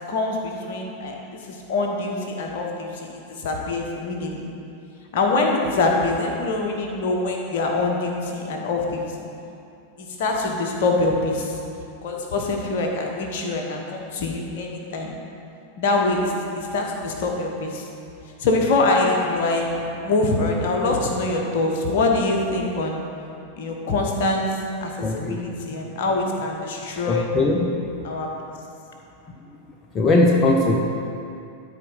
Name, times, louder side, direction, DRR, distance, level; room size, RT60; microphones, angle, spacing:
voice 1, 0.1-4.5 5.1-9.0 10.0-11.6 12.0-15.1 15.8-16.3 16.6-17.9 18.4-23.0 23.6-24.5 24.8-27.3 28.0-28.3, left 2 dB, 50° left, 1 dB, 1.3 m, -24 dB
voice 2, 25.0-25.4 27.1-27.7 29.9-30.8, left 2 dB, 25° left, 0 dB, 0.8 m, -19 dB
12.5 x 4.6 x 5.4 m, 2.6 s
figure-of-eight pair, 90°, 0 cm